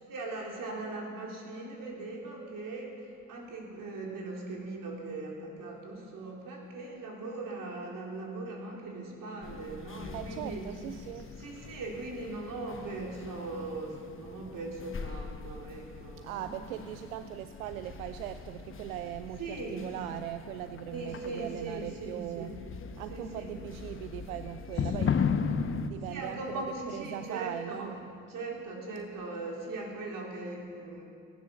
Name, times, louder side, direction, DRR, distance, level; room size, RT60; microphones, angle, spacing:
voice 1, 0.1-10.7 11.1-16.5 19.4-19.8 20.9-22.5 23.1-23.5 24.7-24.9 26.0-28.0 28.3-31.0, right 2 dB, 50° right, -1 dB, 4.2 m, -40 dB
sound 1, 9.4-25.9, left 6 dB, 30° left, 1.0 m, -38 dB
voice 2, 10.1-11.3 16.2-22.6 23.0-25.2 25.8-26.6 26.9-27.9, right 12 dB, 85° right, 10 dB, 0.6 m, -40 dB
16.5 x 11.0 x 6.6 m, 2.3 s
hypercardioid pair, 60°, 41 cm